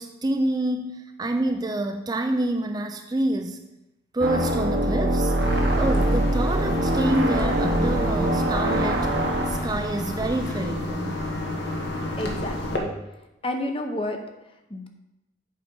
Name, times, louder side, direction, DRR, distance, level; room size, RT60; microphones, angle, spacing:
voice 1, 0.0-3.6 4.1-5.3 5.8-9.1 9.5-11.3, right 1 dB, 20° right, 6 dB, 0.3 m, -27 dB
sound 1, 4.2-9.6, right 1 dB, 70° right, 1.0 m, -23 dB
sound 2, 5.4-12.8, left 1 dB, 65° left, 1.3 m, -30 dB
voice 2, 12.2-12.9 13.4-14.9, left 1 dB, 30° left, 4 dB, 0.7 m, -31 dB
7.7 x 4.8 x 5.3 m, 0.94 s
head